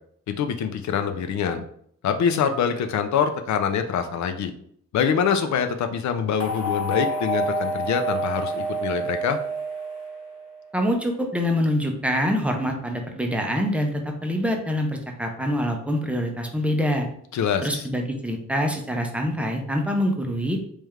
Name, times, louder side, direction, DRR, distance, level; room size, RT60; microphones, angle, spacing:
voice 1, 0.3-1.6 2.0-4.5 4.9-9.4 17.3-17.9, left 7 dB, 70° left, 7 dB, 0.5 m, -24 dB
sound 1, 6.4-10.6, right 1 dB, 50° left, 0.9 m, -28 dB
voice 2, 10.7-17.1 17.6-20.6, equal, 5° right, 3 dB, 0.5 m, -25 dB
3.2 x 3.1 x 3.5 m, 0.66 s
wide cardioid pair, 155°, 29 cm